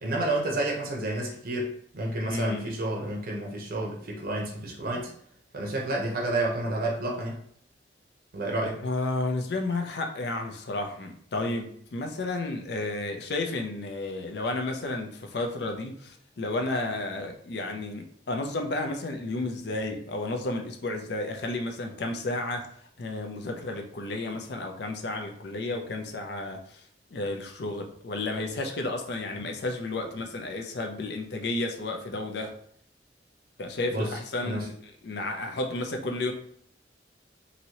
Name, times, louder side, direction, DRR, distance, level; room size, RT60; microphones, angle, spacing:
voice 1, 0.0-5.1 5.5-7.4 8.3-8.8 33.9-34.1 34.4-34.7, right 1 dB, 55° right, -1 dB, 0.6 m, -30 dB
voice 2, 2.3-2.7 8.8-22.7 23.0-26.6 27.1-32.5 33.6-34.7 35.0-36.3, left 2 dB, 65° left, 4 dB, 0.5 m, -32 dB
2.9 x 2.7 x 2.8 m, 0.62 s
head